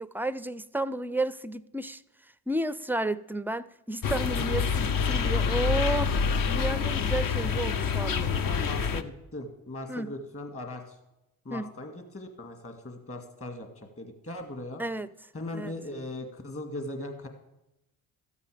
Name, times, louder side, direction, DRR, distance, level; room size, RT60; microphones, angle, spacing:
voice 1, 0.0-2.0 2.5-6.1 6.5-8.3 9.9-10.1 11.5-11.7 14.8-15.1 15.5-15.7, right 2 dB, 5° right, 0.4 m, -32 dB
sound 1, 4.0-9.0, left 6 dB, 50° left, 0.9 m, -27 dB
voice 2, 8.2-11.0 11.4-14.8 15.3-17.3, left 1 dB, 30° left, 2.3 m, -39 dB
13.5 x 8.3 x 5.1 m
supercardioid pair, 65°, 43 cm